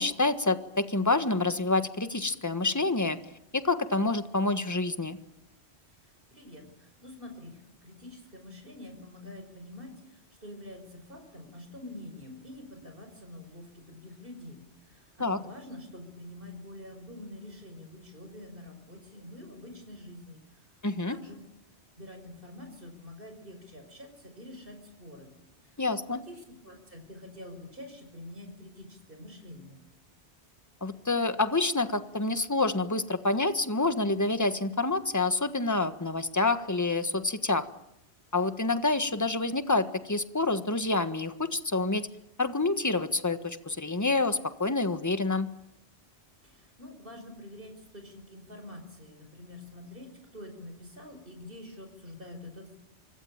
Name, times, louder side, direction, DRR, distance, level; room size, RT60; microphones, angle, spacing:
voice 1, 0.0-3.2 3.5-5.2 15.2-15.4 20.8-21.2 25.8-26.2 30.8-37.6 38.3-42.1 42.4-45.5, left 3 dB, 15° left, 10 dB, 1.5 m, -27 dB
voice 2, 6.3-20.4 21.1-21.4 22.0-25.3 25.6-25.7 26.1-29.8 46.4-52.8, left 1 dB, 50° right, 5 dB, 5.5 m, -46 dB
25.0 x 25.0 x 8.9 m, 0.83 s
omnidirectional pair, 1.2 m